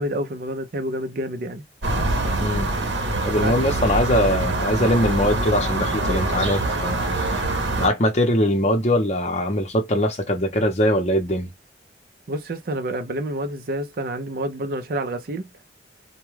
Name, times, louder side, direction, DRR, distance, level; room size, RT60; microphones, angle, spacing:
voice 1, 0.0-1.6 3.4-3.6 12.3-15.5, right 1 dB, 55° right, 0.5 m, -28 dB
sound 1, 1.8-7.9, right 2 dB, 90° right, 0.8 m, -24 dB
voice 2, 2.4-2.7 3.2-7.4 7.7-11.5, left 1 dB, 40° left, 0.7 m, -22 dB
2.2 x 2.2 x 3.1 m
head